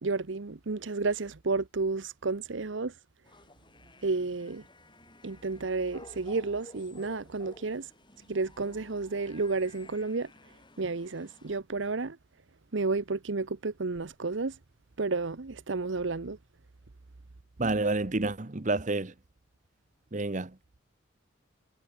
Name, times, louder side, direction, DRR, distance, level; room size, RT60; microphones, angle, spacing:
voice 1, 0.0-2.9 4.0-4.6 5.2-7.9 8.3-10.3 10.8-12.2 12.7-14.6 15.0-16.4, right 3 dB, 65° right, 0.8 m, -31 dB
sound 1, 3.2-11.6, left 2 dB, 25° left, 5.7 m, -54 dB
voice 2, 17.6-19.1 20.1-20.5, right 2 dB, 35° right, 1.0 m, -29 dB
head